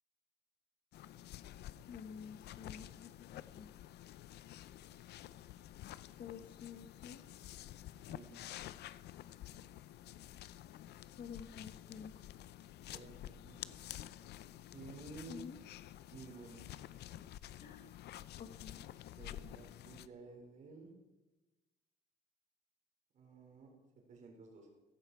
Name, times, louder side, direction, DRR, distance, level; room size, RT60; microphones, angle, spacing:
sound 1, 0.9-20.1, left 12 dB, 60° left, 0.6 m, -50 dB
voice 1, 1.9-3.7 6.2-7.2 11.2-12.2 15.3-15.6 17.6-18.0 18.4-18.8, left 7 dB, 45° left, 8 dB, 1.3 m, -50 dB
voice 2, 8.0-8.5 12.9-13.8 14.7-15.4 16.1-16.6 19.2-20.9 23.1-23.7 24.1-24.7, right 4 dB, 40° right, 1 dB, 4.2 m, -53 dB
16.5 x 15.5 x 4.7 m, 1.1 s
cardioid pair, 175°, 19 cm